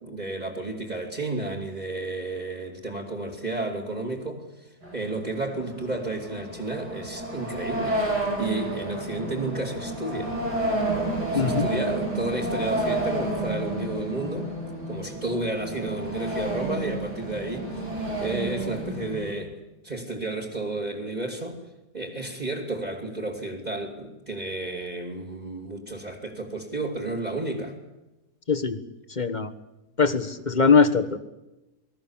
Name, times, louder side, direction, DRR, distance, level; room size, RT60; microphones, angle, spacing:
voice 1, 0.0-8.0 8.4-10.3 11.2-14.5 14.9-17.9 18.2-19.6 19.8-21.6 21.9-27.7, right 2 dB, 25° right, -2 dB, 2.9 m, -32 dB
sound 1, 4.8-19.3, right 1 dB, 90° right, 7.1 m, -30 dB
voice 2, 11.3-11.7 28.5-28.8 29.2-29.5 30.0-31.2, left 5 dB, 30° left, 8 dB, 1.2 m, -21 dB
28.5 x 20.5 x 7.3 m, 1.0 s
omnidirectional pair, 1.7 m